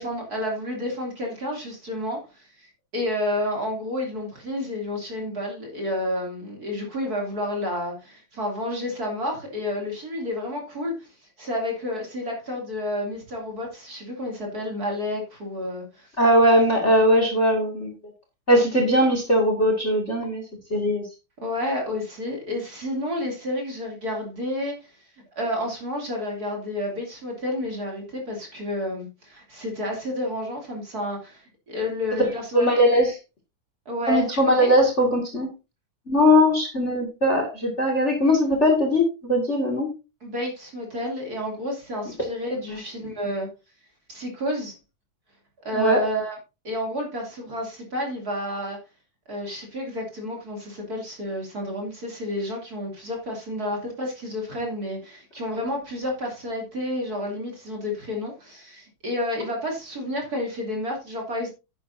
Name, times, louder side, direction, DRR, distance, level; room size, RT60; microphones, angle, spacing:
voice 1, 0.0-11.1 11.4-16.1 21.4-24.8 25.4-32.7 33.9-34.7 40.2-43.5 44.1-44.7 45.6-46.4 46.6-48.8 49.3-61.5, left 1 dB, 35° right, 3.0 m, -30 dB
voice 2, 16.2-17.9 18.5-20.4 20.7-21.0 32.5-33.2 34.1-35.5 36.1-39.9 42.7-42.8 45.7-46.0, equal, 25° left, 2.1 m, -20 dB
10.0 x 10.0 x 2.7 m
omnidirectional pair, 3.3 m